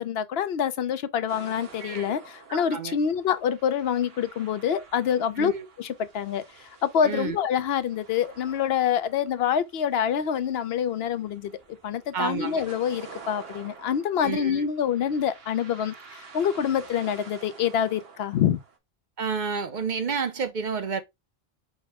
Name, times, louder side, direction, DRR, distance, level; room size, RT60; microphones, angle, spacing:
voice 1, 0.0-5.5 5.8-11.5 11.8-15.9 16.3-18.6, left 8 dB, 80° left, 0.8 m, -26 dB
sound 1, 1.3-18.8, right 5 dB, 75° right, 1.3 m, -49 dB
voice 2, 1.8-2.2 2.5-2.9 5.4-5.6 7.0-7.4 12.1-12.6 14.2-14.5 19.2-21.0, right 6 dB, 55° right, 0.7 m, -30 dB
5.2 x 2.0 x 4.8 m
omnidirectional pair, 1.0 m